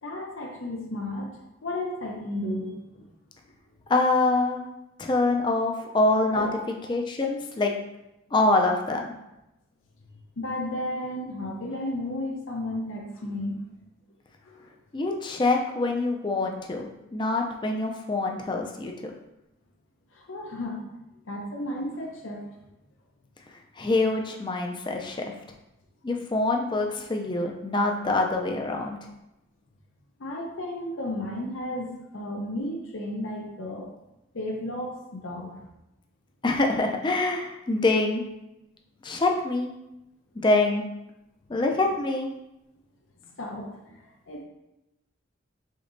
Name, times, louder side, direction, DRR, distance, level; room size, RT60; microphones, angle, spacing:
voice 1, 0.0-1.3 1.6-3.0 6.3-6.6 10.4-13.6 14.4-14.7 20.1-20.8 21.3-22.4 30.2-33.9 34.3-35.6 43.4-44.4, left 1 dB, 75° left, -1 dB, 0.7 m, -33 dB
voice 2, 3.9-4.6 5.0-6.5 6.9-7.7 8.3-9.1 14.9-19.1 23.8-25.3 26.0-29.0 36.4-38.2 39.0-39.7 40.4-40.8 41.5-42.3, left 2 dB, 25° left, 2 dB, 0.4 m, -25 dB
5.2 x 3.8 x 2.6 m, 0.92 s
head